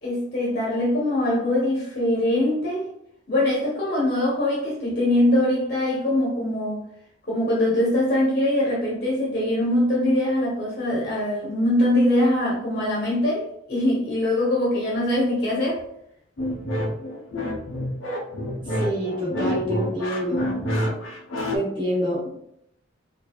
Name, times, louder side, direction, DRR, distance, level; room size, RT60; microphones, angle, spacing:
voice 1, 0.0-2.9 3.3-6.8 7.3-15.8, left 1 dB, 45° left, -5 dB, 1.0 m, -22 dB
sound 1, 16.4-21.6, equal, 90° left, 0.7 m, -28 dB
voice 2, 18.8-20.5 21.5-22.4, equal, 25° right, -7 dB, 1.0 m, -26 dB
4.7 x 2.6 x 2.3 m, 0.75 s
head